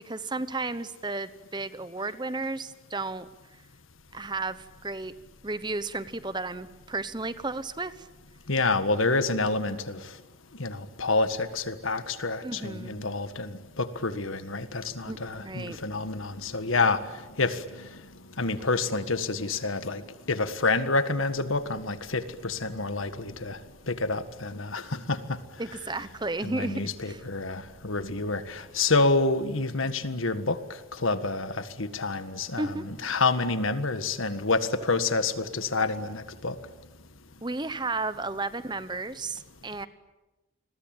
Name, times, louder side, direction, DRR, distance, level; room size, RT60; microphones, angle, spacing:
voice 1, 0.0-3.3 4.1-5.1 5.4-8.1 12.4-13.1 15.0-15.8 25.6-27.2 32.6-32.9 37.4-39.9, right 3 dB, 20° right, 1.0 m, -33 dB
voice 2, 8.5-10.0 10.6-17.0 17.4-17.6 18.4-20.0 20.3-23.6 23.9-25.2 26.4-30.6 31.0-31.5 31.8-36.5, left 3 dB, 80° left, 1.7 m, -28 dB
29.0 x 22.0 x 9.1 m
head